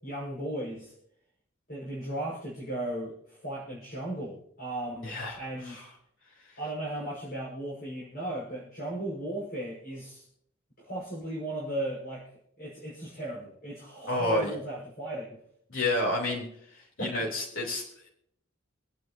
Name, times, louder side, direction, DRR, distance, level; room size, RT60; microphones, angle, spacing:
voice 1, 0.0-0.9 1.7-5.8 6.6-10.3 10.8-12.3 12.6-15.4 17.0-17.1, right 1 dB, 50° left, -5 dB, 5.6 m, -36 dB
voice 2, 5.0-5.4 5.7-5.8 14.1-14.5 15.7-16.4 17.0-18.1, left 1 dB, 75° left, -4 dB, 3.7 m, -29 dB
27.5 x 9.2 x 2.9 m, 0.69 s
head